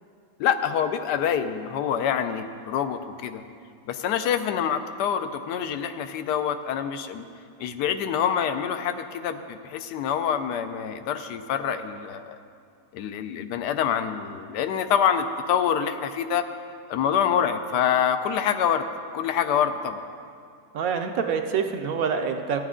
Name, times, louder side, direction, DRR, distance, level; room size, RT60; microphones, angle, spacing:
voice 1, 0.4-3.4 3.9-7.3 7.6-12.4 12.9-16.5 16.9-18.9 19.1-20.0, left 8 dB, 85° left, 9 dB, 1.2 m, -26 dB
voice 2, 20.7-22.7, right 6 dB, 70° right, 6 dB, 0.9 m, -26 dB
14.0 x 9.2 x 3.7 m, 2.3 s
omnidirectional pair, 1.8 m